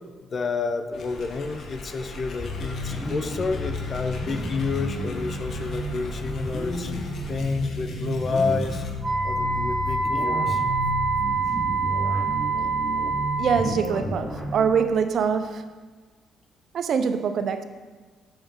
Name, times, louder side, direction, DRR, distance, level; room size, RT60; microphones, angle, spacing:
voice 1, 0.3-8.9 9.2-10.6, left 4 dB, 45° left, 0.5 m, -29 dB
sound 1, 0.9-8.9, left 2 dB, 65° left, 0.9 m, -39 dB
sound 2, 2.4-14.7, left 1 dB, 5° left, 1.1 m, -32 dB
Wind instrument woodwind instrument, 9.0-13.8, right 4 dB, 25° right, 1.6 m, -26 dB
voice 2, 13.4-15.6 16.7-17.6, right 6 dB, 60° right, 0.4 m, -24 dB
7.0 x 5.4 x 3.6 m
cardioid pair, 90°, 0 cm